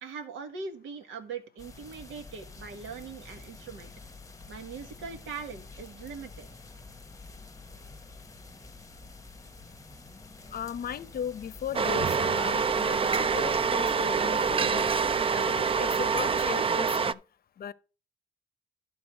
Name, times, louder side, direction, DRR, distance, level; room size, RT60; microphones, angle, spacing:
voice 1, 0.0-3.9 4.5-6.5, right 5 dB, 80° right, 1.7 m, -41 dB
sound 1, 1.6-16.5, left 3 dB, 15° left, 1.0 m, -48 dB
voice 2, 10.5-17.2 17.6-17.7, left 8 dB, 50° left, 0.7 m, -37 dB
sound 2, 11.7-17.1, right 5 dB, 25° right, 0.5 m, -26 dB
11.5 x 3.9 x 6.2 m
cardioid pair, 90°, 20 cm